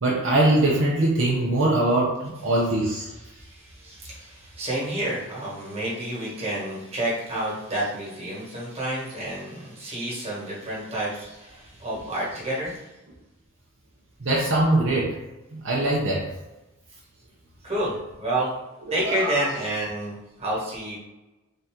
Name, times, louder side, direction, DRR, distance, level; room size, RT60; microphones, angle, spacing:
voice 1, 0.0-3.1 14.2-15.2 15.5-16.3 18.9-19.5, right 1 dB, 65° right, -3 dB, 0.7 m, -22 dB
voice 2, 2.4-2.8 3.1-12.9 17.6-18.5 18.9-21.0, right 1 dB, 30° right, -6 dB, 1.5 m, -30 dB
3.8 x 2.8 x 3.6 m, 1.0 s
head